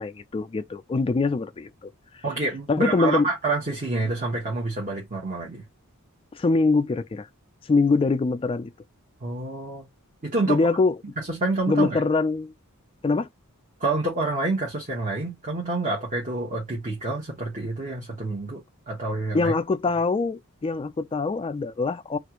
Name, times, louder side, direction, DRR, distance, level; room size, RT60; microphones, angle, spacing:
voice 1, 0.0-2.2 2.7-3.3 6.3-7.3 7.7-8.7 10.5-11.0 11.7-12.5 13.0-13.3 19.3-22.2, left 3 dB, 25° left, 0.3 m, -23 dB
voice 2, 2.2-5.6 9.2-9.9 10.2-10.6 11.2-12.0 13.8-19.5, right 3 dB, 35° right, 1.2 m, -28 dB
3.3 x 2.4 x 2.9 m
head